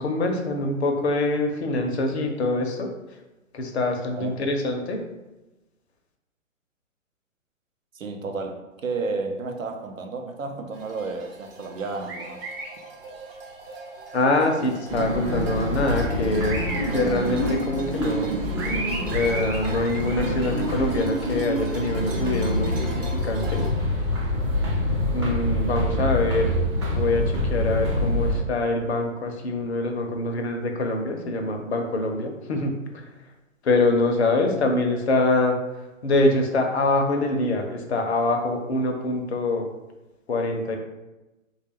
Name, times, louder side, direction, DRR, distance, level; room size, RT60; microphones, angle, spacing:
voice 1, 0.0-2.9 3.5-5.0 14.1-16.7 16.9-18.3 19.1-23.6 25.1-26.5 26.9-33.0 33.6-35.6 36.0-39.7 40.3-40.8, left 2 dB, 55° left, 4 dB, 0.6 m, -24 dB
voice 2, 7.9-12.5, right 3 dB, 75° right, 4 dB, 0.6 m, -32 dB
sound 1, 10.7-23.7, right 2 dB, 45° right, 0.9 m, -37 dB
sound 2, 14.9-28.4, left 1 dB, 25° right, 0.5 m, -26 dB
3.3 x 2.3 x 3.4 m, 1.0 s
figure-of-eight pair, 125°, 40 cm